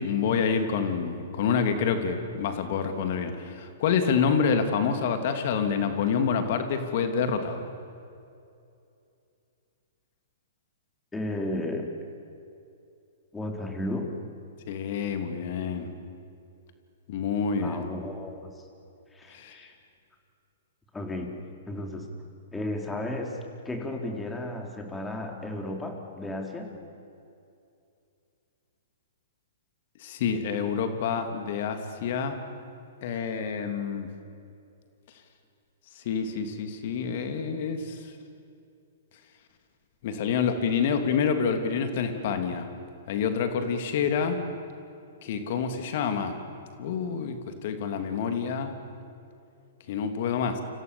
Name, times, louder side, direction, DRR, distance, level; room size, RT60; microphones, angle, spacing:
voice 1, 0.0-7.6 14.7-15.9 17.1-17.9 19.3-19.7 30.0-32.4 33.0-34.1 36.0-38.0 40.0-42.7 43.1-44.4 45.2-46.4 46.8-48.7 49.9-50.6, left 6 dB, 50° left, 7 dB, 3.0 m, -27 dB
voice 2, 11.1-11.9 13.3-14.1 17.6-18.6 19.1-19.7 20.9-21.3 21.7-22.1 22.5-23.4 23.6-26.7, left 1 dB, 10° left, 3 dB, 4.1 m, -34 dB
29.5 x 26.5 x 7.2 m, 2.6 s
figure-of-eight pair, 115°, 0 cm